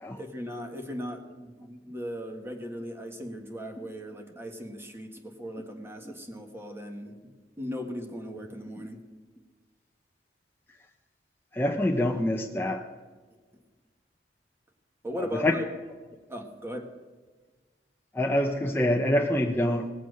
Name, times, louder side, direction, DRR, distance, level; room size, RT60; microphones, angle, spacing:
voice 1, 0.1-9.0 15.0-15.6 16.3-16.9, equal, 15° right, 4 dB, 1.6 m, -38 dB
voice 2, 11.5-12.9 15.3-15.5 18.1-19.9, left 1 dB, 15° left, 1 dB, 0.7 m, -26 dB
18.5 x 7.4 x 6.5 m, 1.4 s
head